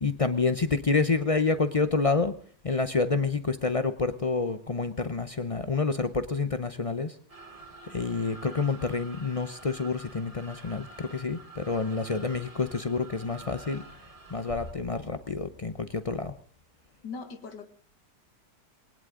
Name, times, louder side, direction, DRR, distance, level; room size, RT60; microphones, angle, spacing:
voice 1, 0.0-2.3 2.6-7.1 7.9-13.8 14.3-16.3, left 4 dB, 60° left, 0.3 m, -28 dB
sound 1, 7.3-14.7, right 3 dB, 20° right, 1.6 m, -48 dB
voice 2, 17.0-17.7, left 5 dB, 80° left, 2.2 m, -39 dB
20.0 x 19.0 x 3.8 m
omnidirectional pair, 1.9 m